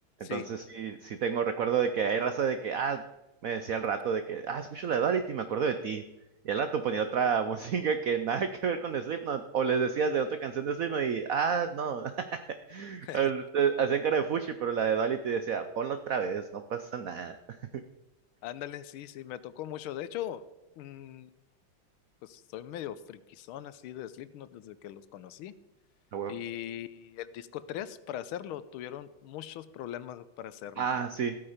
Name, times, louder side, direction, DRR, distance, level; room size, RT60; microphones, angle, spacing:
voice 1, 0.2-3.0 3.4-6.0 6.4-12.4 12.7-17.4 17.7-17.8 26.1-26.3 30.8-31.4, right 6 dB, 85° right, 9 dB, 0.7 m, -30 dB
voice 2, 18.4-20.4 20.8-21.3 22.2-25.5 26.3-30.9, left 11 dB, 80° left, 15 dB, 1.5 m, -40 dB
14.5 x 8.8 x 5.0 m, 0.96 s
omnidirectional pair, 2.4 m